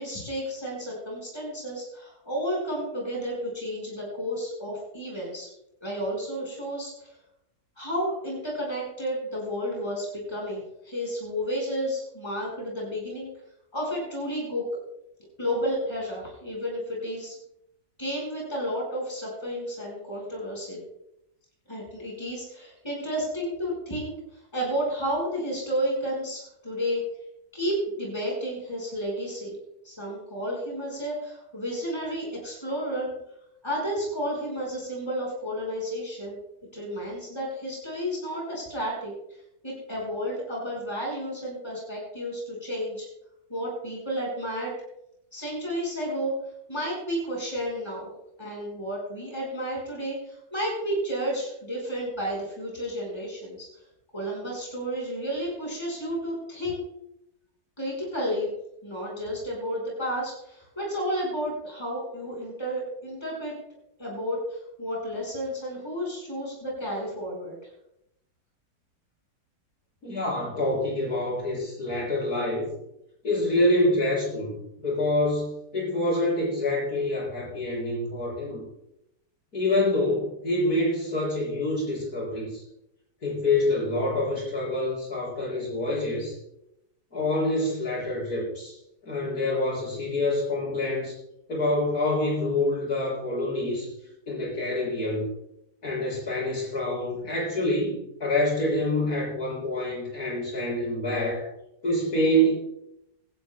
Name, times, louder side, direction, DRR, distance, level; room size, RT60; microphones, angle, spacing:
voice 1, 0.0-5.5 5.8-7.1 7.8-13.3 13.7-14.7 15.4-17.4 18.0-20.8 21.7-27.0 27.5-29.6 29.8-33.1 33.6-36.4 36.7-43.1 43.5-44.7 45.3-46.3 46.7-48.1 48.4-53.8 54.1-56.8 57.8-58.5 58.8-63.5 64.0-67.6, equal, 15° left, -2 dB, 4.8 m, -32 dB
voice 2, 70.0-72.7 73.2-78.6 79.5-82.6 83.2-86.4 87.1-88.8 89.0-91.1 91.5-93.9 94.3-95.3 95.8-101.5 101.8-102.5, left 1 dB, 60° left, -5 dB, 6.8 m, -26 dB
25.0 x 11.5 x 2.2 m, 0.82 s
omnidirectional pair, 1.8 m